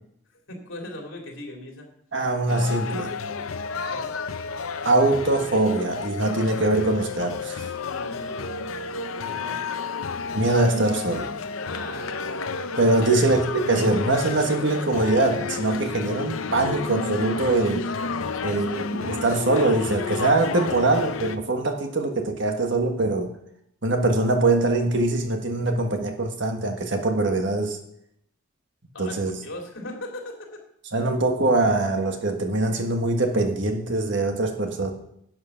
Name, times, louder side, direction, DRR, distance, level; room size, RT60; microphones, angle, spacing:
voice 1, 0.5-1.9 3.8-4.1 8.0-8.7 9.3-9.7 11.6-12.1 13.0-13.2 18.2-19.0 28.9-30.3, left 2 dB, 70° left, 1 dB, 2.8 m, -38 dB
voice 2, 2.1-3.1 4.8-7.6 10.3-11.3 12.8-17.9 18.4-23.3 23.8-27.8 29.0-29.3 30.9-34.9, right 2 dB, 60° right, 4 dB, 1.5 m, -23 dB
sound 1, 2.5-21.4, left 4 dB, 85° left, 0.6 m, -31 dB
11.0 x 7.7 x 5.9 m, 0.73 s
head